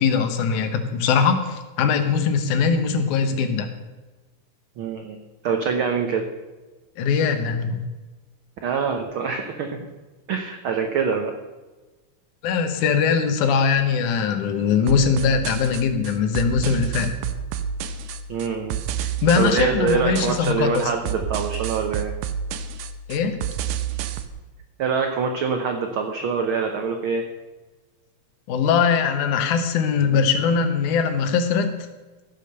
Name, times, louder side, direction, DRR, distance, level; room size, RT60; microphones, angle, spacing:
voice 1, 0.0-3.7 7.0-7.8 12.4-17.1 19.0-20.8 23.1-23.4 28.5-31.9, left 6 dB, 75° left, 7 dB, 2.6 m, -21 dB
voice 2, 4.8-5.2 5.4-6.2 8.6-9.9 10.3-11.3 18.3-18.8 19.4-22.1 24.8-27.3, right 5 dB, 70° right, 4 dB, 1.3 m, -24 dB
sound 1, 14.9-24.3, right 8 dB, 85° right, 2.4 m, -30 dB
15.5 x 6.8 x 6.7 m, 1.2 s
omnidirectional pair, 3.6 m